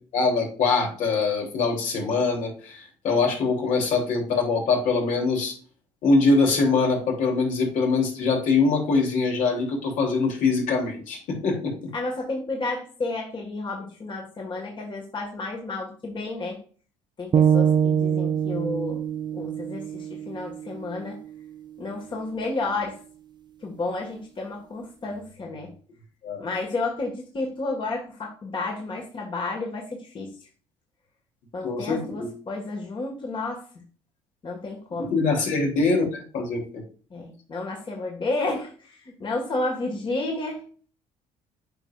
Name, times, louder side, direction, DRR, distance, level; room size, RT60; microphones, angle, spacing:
voice 1, 0.1-5.5 6.0-11.8 26.2-26.4 31.6-32.3 35.0-36.8, left 4 dB, 70° left, -1 dB, 3.2 m, -23 dB
voice 2, 11.9-16.6 17.2-19.1 19.3-21.2 21.8-23.0 23.6-25.7 26.4-30.3 31.5-33.7 34.4-35.1 37.1-40.9, left 2 dB, 35° left, 0 dB, 1.8 m, -31 dB
sound 1, 17.3-21.5, right 8 dB, 35° right, 0.4 m, -24 dB
8.8 x 5.1 x 2.5 m, 0.41 s
supercardioid pair, 85°, 14 cm